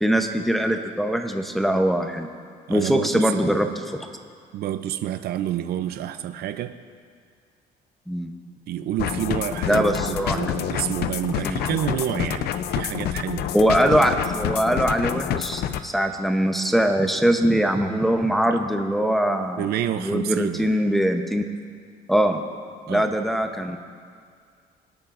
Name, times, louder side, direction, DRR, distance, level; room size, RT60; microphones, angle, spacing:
voice 1, 0.0-2.3 2.7-4.0 8.1-8.3 9.7-10.4 11.4-11.7 13.5-19.7 20.0-21.4 22.1-22.4 22.9-23.8, equal, ahead, 4 dB, 0.9 m, -22 dB
voice 2, 2.7-3.3 4.5-6.7 8.7-13.5 19.6-20.7 22.9-23.1, right 11 dB, 70° right, 10 dB, 0.6 m, -28 dB
sound 1, 9.0-15.8, left 9 dB, 70° left, 0.6 m, -28 dB
26.0 x 8.9 x 2.6 m, 2.1 s
cardioid pair, 110°, 17 cm